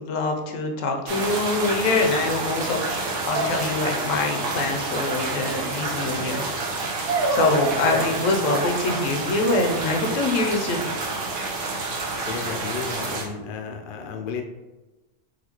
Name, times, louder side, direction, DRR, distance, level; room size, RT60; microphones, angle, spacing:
voice 1, 0.0-2.8 3.2-6.4 7.3-10.9, left 3 dB, 85° left, 3 dB, 1.0 m, -24 dB
sound 1, 1.1-13.3, right 3 dB, 75° right, 1.0 m, -29 dB
sound 2, 3.3-4.3 7.1-8.8, right 2 dB, 60° right, 0.7 m, -27 dB
voice 2, 12.1-14.4, left 5 dB, 60° left, 3 dB, 0.5 m, -33 dB
4.1 x 2.4 x 2.8 m, 1.1 s
omnidirectional pair, 1.3 m